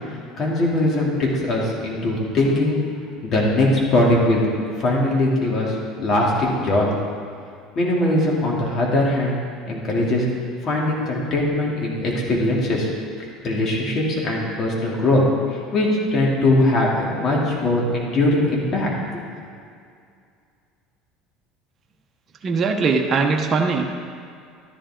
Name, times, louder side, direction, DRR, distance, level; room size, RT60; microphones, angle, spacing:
voice 1, 0.4-2.8 3.2-4.5 4.8-6.9 7.7-9.4 9.7-10.3 10.6-12.9 13.4-15.2 15.5-19.2, left 1 dB, 45° left, -3 dB, 3.0 m, -21 dB
voice 2, 22.4-23.9, right 4 dB, 35° right, 1 dB, 1.1 m, -20 dB
12.5 x 11.0 x 3.9 m, 2.3 s
supercardioid pair, 105°, 0 cm